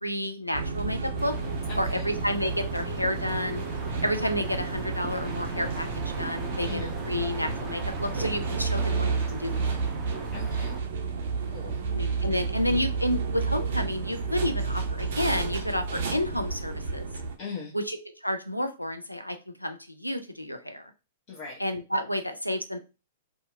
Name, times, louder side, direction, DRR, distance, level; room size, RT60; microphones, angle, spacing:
voice 1, 0.0-1.3 1.8-3.6 4.0-5.9 6.2-9.8 11.9-17.1 17.7-20.9 21.6-22.8, left 1 dB, 90° left, 7 dB, 0.4 m, -30 dB
sound 1, 0.5-17.4, right 4 dB, 50° right, 0.5 m, -31 dB
sound 2, 1.2-10.8, right 2 dB, 10° right, 0.6 m, -39 dB
voice 2, 1.7-2.1 6.6-6.9 10.3-10.8 11.4-11.8 17.4-17.7 21.3-21.6, left 5 dB, 35° left, -4 dB, 0.7 m, -39 dB
2.7 x 2.3 x 2.4 m, 0.30 s
figure-of-eight pair, 105°, 0 cm